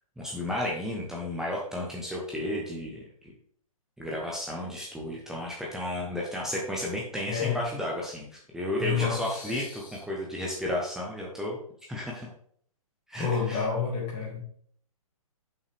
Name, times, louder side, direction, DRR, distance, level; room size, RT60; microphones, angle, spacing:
voice 1, 0.2-3.3 4.0-11.6 11.9-12.3 13.1-13.6, left 1 dB, 5° right, -3 dB, 0.9 m, -33 dB
voice 2, 7.3-7.7 8.8-10.0 13.2-14.4, left 6 dB, 25° left, -2 dB, 2.1 m, -30 dB
6.7 x 5.5 x 3.4 m, 0.62 s
figure-of-eight pair, 120°, 18 cm